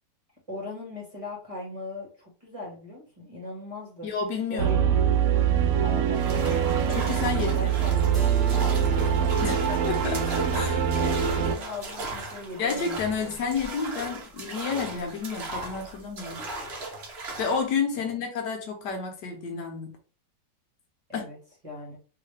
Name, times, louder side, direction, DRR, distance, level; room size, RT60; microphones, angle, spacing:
voice 1, 0.5-4.1 4.5-4.8 5.8-8.1 8.4-9.3 9.7-9.8 10.5-10.7 11.2-13.0 13.2-13.3 21.1-21.4 21.6-22.0, left 2 dB, 20° right, 1.1 m, -39 dB
voice 2, 4.0-4.8 6.9-8.1 9.4-9.6 9.8-10.9 12.6-16.5 17.4-19.9 21.1-21.3, left 5 dB, 75° left, 1.4 m, -30 dB
sound 1, 4.6-11.6, right 8 dB, 70° right, 0.8 m, -24 dB
sound 2, 6.2-17.7, right 2 dB, 45° right, 0.9 m, -37 dB
Keyboard (musical), 8.1-13.7, right 1 dB, ahead, 0.6 m, -43 dB
3.2 x 2.9 x 3.2 m
omnidirectional pair, 1.9 m